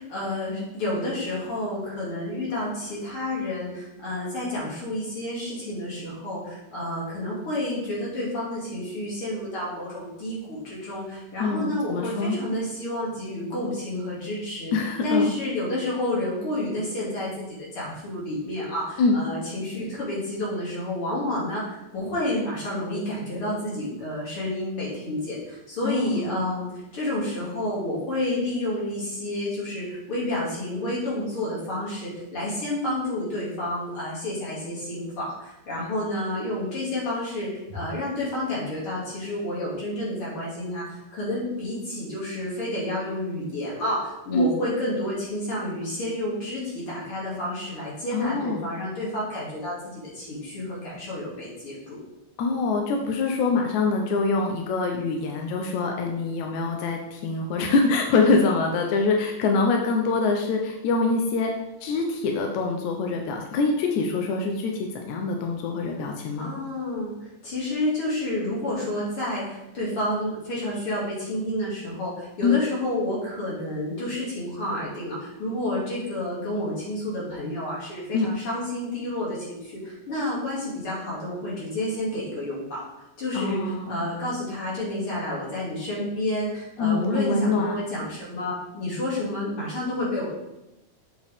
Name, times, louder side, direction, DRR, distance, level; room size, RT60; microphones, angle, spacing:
voice 1, 0.0-14.7 15.0-52.0 66.4-82.9 83.2-83.6 83.8-90.3, left 1 dB, 45° left, -6 dB, 3.1 m, -30 dB
voice 2, 11.4-12.4 14.7-15.3 19.0-19.2 25.8-26.4 44.3-44.5 48.1-48.6 52.4-61.5 61.8-66.5 72.4-72.6 78.1-78.3 83.3-84.0 86.8-87.8, left 4 dB, 75° left, 2 dB, 2.0 m, -24 dB
7.5 x 6.5 x 3.5 m, 0.93 s
omnidirectional pair, 3.6 m